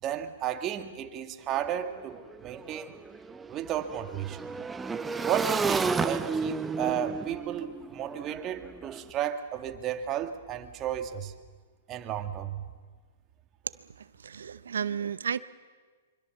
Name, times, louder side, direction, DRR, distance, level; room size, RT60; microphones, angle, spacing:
voice 1, 0.0-3.0 3.5-4.4 5.2-11.3 11.9-12.7, right 10 dB, 30° right, 7 dB, 2.0 m, -33 dB
Motorcycle / Engine, 1.5-1.6 1.9-9.0, right 4 dB, 10° right, 0.8 m, -32 dB
voice 2, 14.2-15.4, right 7 dB, 80° right, 16 dB, 0.7 m, -32 dB
25.0 x 24.5 x 7.2 m, 1.5 s
hypercardioid pair, 120°, 0 cm